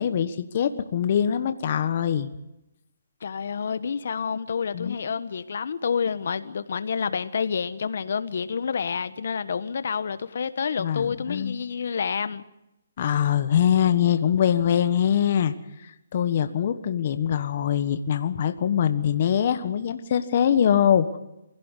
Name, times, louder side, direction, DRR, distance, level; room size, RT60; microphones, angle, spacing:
voice 1, 0.0-2.3 4.7-5.0 10.8-11.6 13.0-15.5 15.8-21.2, left 9 dB, 40° left, 1.3 m, -23 dB
voice 2, 3.2-12.4, left 6 dB, 60° left, 1.3 m, -28 dB
24.0 x 16.5 x 8.3 m
hypercardioid pair, 165°, 0 cm